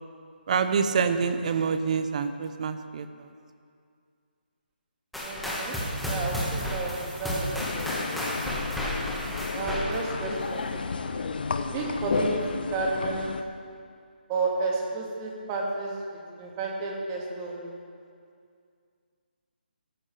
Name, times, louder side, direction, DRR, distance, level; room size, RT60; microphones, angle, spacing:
voice 1, 0.5-3.3 9.3-9.4, right 6 dB, 45° right, 10 dB, 0.8 m, -27 dB
sound 1, 5.1-11.0, equal, ahead, 1.6 m, -32 dB
voice 2, 5.2-8.2 9.5-10.7 11.6-13.3 14.3-17.7, right 3 dB, 25° right, -2 dB, 2.1 m, -32 dB
sound 2, 7.6-13.4, left 4 dB, 60° left, 0.9 m, -32 dB
17.5 x 13.5 x 3.4 m, 2.3 s
figure-of-eight pair, 150°, 6 cm